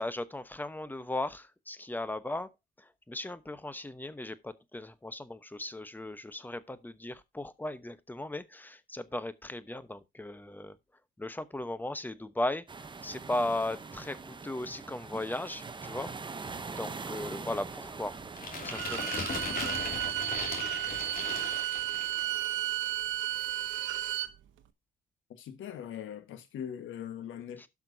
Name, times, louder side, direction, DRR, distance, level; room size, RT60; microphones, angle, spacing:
voice 1, 0.0-2.5 2.8-10.8 11.2-12.6 13.0-16.1 16.8-18.1 18.6-19.1 22.3-22.4 27.6-27.7, left 1 dB, 10° left, 0.9 m, -37 dB
sound 1, 12.7-19.1, right 4 dB, 25° right, 0.8 m, -42 dB
sound 2, 18.4-22.4, left 4 dB, 45° left, 2.7 m, -38 dB
Bowed string instrument, 18.6-24.3, right 13 dB, 80° right, 0.9 m, -33 dB
voice 2, 25.3-27.6, left 9 dB, 80° left, 1.5 m, -41 dB
16.5 x 6.0 x 2.7 m
cardioid pair, 90°, 20 cm